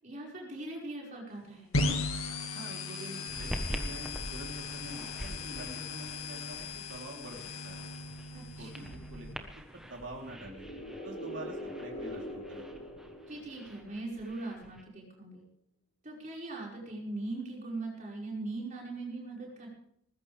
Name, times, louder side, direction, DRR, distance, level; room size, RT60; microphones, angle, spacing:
voice 1, 0.0-1.7 8.3-9.0 13.3-15.5 16.0-19.7, right 2 dB, 35° right, -2 dB, 5.5 m, -40 dB
sound 1, 1.7-9.3, left 3 dB, 90° left, 2.0 m, -37 dB
voice 2, 2.5-7.4 7.6-7.8 8.6-9.4 9.7-10.7 11.0-12.6, right 1 dB, 65° right, -1 dB, 3.7 m, -46 dB
sound 2, 3.3-14.8, equal, 5° right, 1.2 m, -45 dB
sound 3, 10.3-14.1, equal, 35° left, 6.2 m, -42 dB
20.0 x 15.0 x 3.5 m, 0.69 s
head